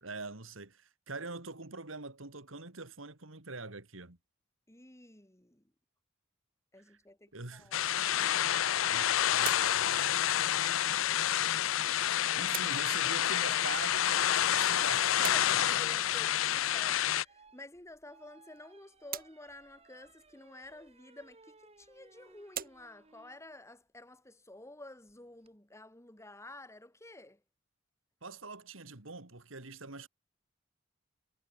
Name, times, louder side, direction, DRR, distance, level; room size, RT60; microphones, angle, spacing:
voice 1, 0.0-4.2 7.3-7.7 8.9-9.5 12.3-15.6 28.2-30.1, right 3 dB, 85° right, 2.9 m, -44 dB
voice 2, 4.7-5.7 6.7-8.9 12.2-12.4 15.2-27.4, left 1 dB, 15° left, 3.1 m, -52 dB
sound 1, 6.9-26.2, right 10 dB, 45° right, 4.7 m, -50 dB
sound 2, 7.7-17.2, left 11 dB, 90° left, 0.5 m, -29 dB
sound 3, 12.2-23.4 25.1-25.5, right 3 dB, 30° right, 2.2 m, -62 dB
head